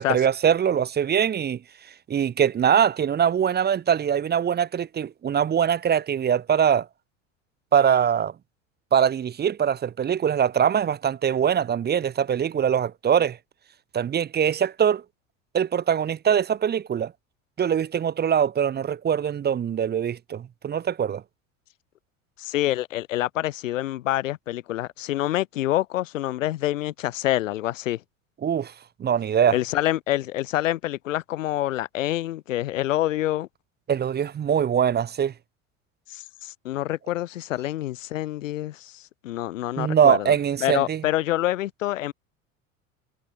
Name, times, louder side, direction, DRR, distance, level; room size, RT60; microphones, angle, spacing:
voice 1, 0.0-1.6 2.1-6.9 7.7-8.3 8.9-13.4 13.9-15.0 15.5-17.1 17.6-21.2 28.4-28.7 29.0-29.6 33.9-35.3 39.8-41.0, right 8 dB, 25° right, 0.8 m, -22 dB
voice 2, 22.4-28.0 29.5-33.5 36.1-40.3 40.6-42.1, left 14 dB, 80° left, 1.0 m, -27 dB
hypercardioid pair, 80°, 38 cm